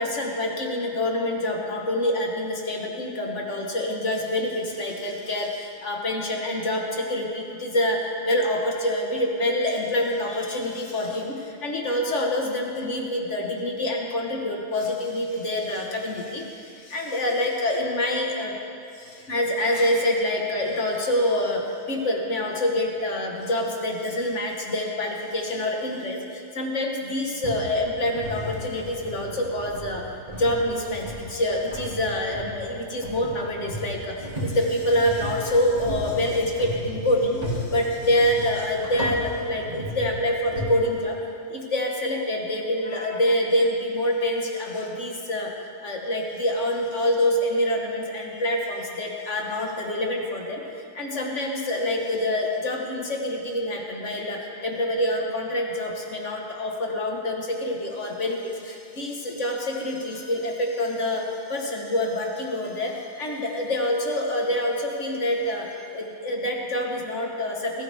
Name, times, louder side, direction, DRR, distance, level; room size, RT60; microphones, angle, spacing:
voice 1, 0.0-18.5 19.0-30.0 30.3-41.2 41.5-45.5 45.8-50.6 51.0-65.7 65.9-67.8, left 1 dB, 50° left, 0 dB, 1.7 m, -26 dB
sound 1, 27.4-40.7, equal, 25° right, 3.0 m, -35 dB
20.5 x 13.5 x 3.5 m, 2.5 s
omnidirectional pair, 1.6 m